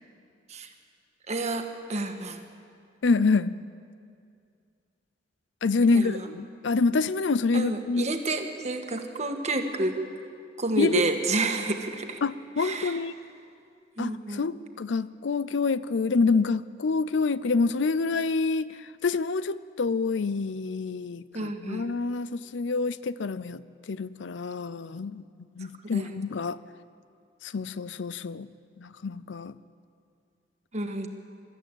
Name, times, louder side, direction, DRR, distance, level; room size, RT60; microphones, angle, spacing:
voice 1, 1.3-2.4 5.9-6.3 7.5-10.0 10.6-12.2 12.6-13.0 14.0-14.4 21.3-21.9 25.8-26.1 30.7-31.1, right 2 dB, 40° right, 5 dB, 1.6 m, -30 dB
voice 2, 3.0-3.6 5.6-8.1 10.8-11.0 12.2-13.2 14.0-18.8 19.0-25.2 25.6-26.6 27.4-28.5 28.8-29.5, left 4 dB, 80° left, 16 dB, 0.5 m, -27 dB
22.5 x 13.5 x 9.0 m, 2.3 s
head